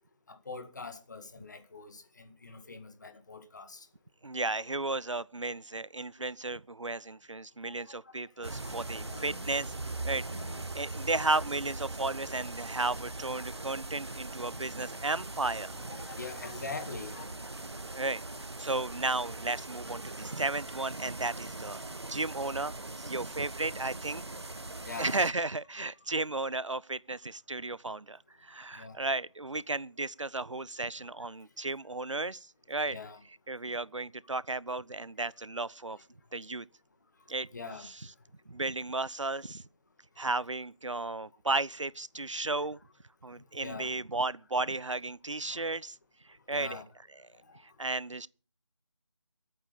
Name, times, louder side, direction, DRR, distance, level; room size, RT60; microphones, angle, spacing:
voice 1, 0.3-3.9 7.6-8.1 8.4-9.5 10.3-10.8 11.1-11.2 13.3-14.6 15.9-17.3 23.4-23.5 24.8-25.2 28.7-29.0 31.2-31.3 32.9-33.2 35.9-36.0 37.5-37.9 43.6-44.0 45.5-45.7 46.5-46.9 47.4-47.6, left 4 dB, 35° left, 2.0 m, -45 dB
voice 2, 4.2-9.7 10.0-15.9 17.9-18.2 18.6-21.8 22.1-24.2 25.0-33.0 33.5-36.0 36.3-36.7 37.3-37.5 37.8-37.9 38.5-39.6 40.2-42.8 43.2-46.0 46.5-46.8 47.8-48.3, right 3 dB, 80° right, 0.6 m, -34 dB
sound 1, 8.4-25.3, right 2 dB, 60° right, 1.6 m, -41 dB
22.0 x 9.0 x 5.2 m
figure-of-eight pair, 160°, 16 cm